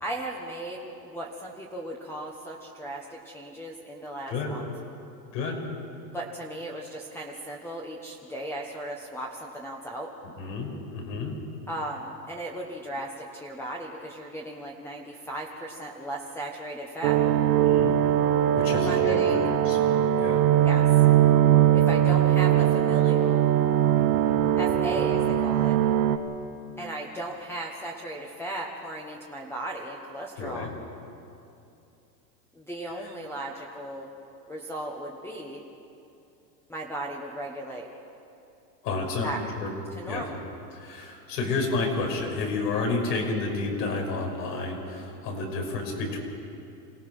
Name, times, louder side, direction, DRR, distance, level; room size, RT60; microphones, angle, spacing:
voice 1, 0.0-4.7 6.1-10.1 11.7-17.2 18.7-19.5 20.6-20.9 21.7-23.4 24.6-25.8 26.8-30.7 32.5-34.1 34.5-35.6 36.7-37.9 39.2-39.4 40.0-40.4, right 1 dB, 5° left, -1 dB, 1.3 m, -36 dB
voice 2, 10.4-11.3 17.6-18.0 18.5-19.4 19.6-19.8 20.2-20.4 23.9-24.5 30.4-30.7 33.0-33.1 38.8-39.3 39.6-39.7 40.1-40.2 40.7-46.2, left 3 dB, 80° left, 0 dB, 5.9 m, -30 dB
sound 1, 17.0-26.2, right 11 dB, 65° right, 1.4 m, -21 dB
27.5 x 17.0 x 6.2 m, 2.7 s
supercardioid pair, 140°, 49 cm